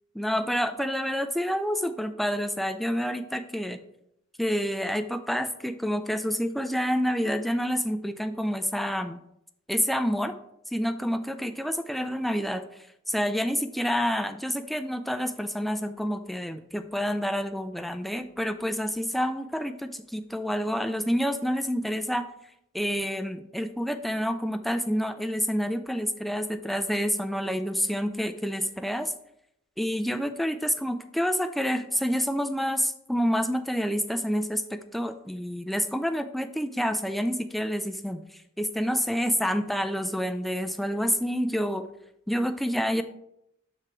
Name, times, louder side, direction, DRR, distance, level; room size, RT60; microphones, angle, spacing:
voice 1, 0.1-3.8 4.4-9.2 9.7-10.3 10.7-12.6 13.1-22.3 22.7-29.1 29.8-38.2 38.6-41.8 42.3-43.0, equal, ahead, 8 dB, 0.3 m, -28 dB
6.5 x 3.7 x 4.5 m, 0.78 s
head